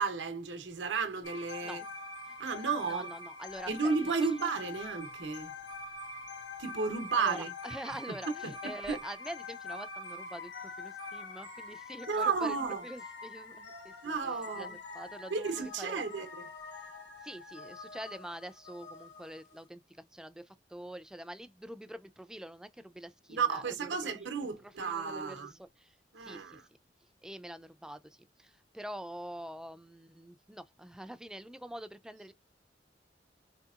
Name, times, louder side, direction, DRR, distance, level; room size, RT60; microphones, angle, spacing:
voice 1, 0.0-1.8 2.4-3.1 3.7-5.5 6.6-7.5 8.1-8.2 8.4-9.0 12.1-12.8 14.0-14.8 15.3-16.5 23.3-25.5 26.1-26.7, right 5 dB, 85° right, 0.7 m, -33 dB
sound 1, 1.2-19.6, left 3 dB, 75° left, 1.2 m, -45 dB
voice 2, 2.8-4.3 7.1-12.6 12.8-15.5 15.8-16.0 17.2-24.3 24.6-26.0 26.2-26.6 27.2-32.3, right 1 dB, 5° right, 0.3 m, -45 dB
4.2 x 2.8 x 2.4 m
head